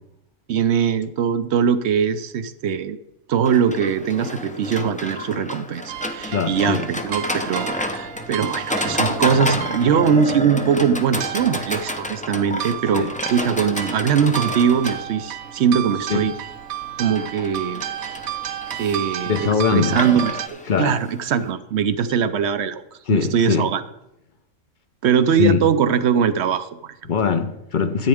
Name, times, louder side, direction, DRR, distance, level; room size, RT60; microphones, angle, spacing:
voice 1, 0.5-3.0 3.3-16.3 17.0-17.8 18.8-22.8 23.1-23.8 25.0-27.0, right 7 dB, 60° right, 0.8 m, -21 dB
Livestock farm animals working animals, 3.5-21.5, left 1 dB, 10° left, 0.5 m, -30 dB
sound 1, 5.9-20.5, right 12 dB, 85° right, 1.1 m, -33 dB
voice 2, 6.3-6.9 12.9-13.1 16.1-16.3 19.2-20.0 20.7-21.0 23.1-23.7 25.4-25.6 27.1-28.1, left 6 dB, 45° left, 0.7 m, -21 dB
13.5 x 9.0 x 3.5 m
omnidirectional pair, 1.5 m